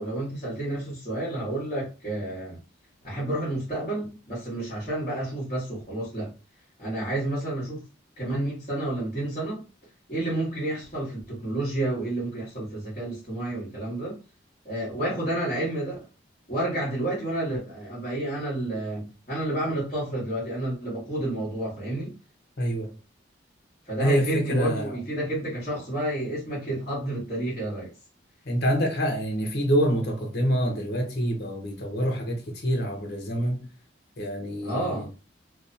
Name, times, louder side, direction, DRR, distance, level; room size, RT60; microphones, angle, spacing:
voice 1, 0.0-2.6 3.0-6.3 6.8-7.8 8.2-9.6 10.1-14.2 14.6-16.0 16.5-22.1 23.9-27.9 34.6-35.1, right 1 dB, 35° left, 1.2 m, -30 dB
voice 2, 22.6-22.9 24.0-25.0 28.5-33.7 34.2-35.1, equal, 55° left, 0.8 m, -26 dB
2.9 x 2.0 x 2.6 m
head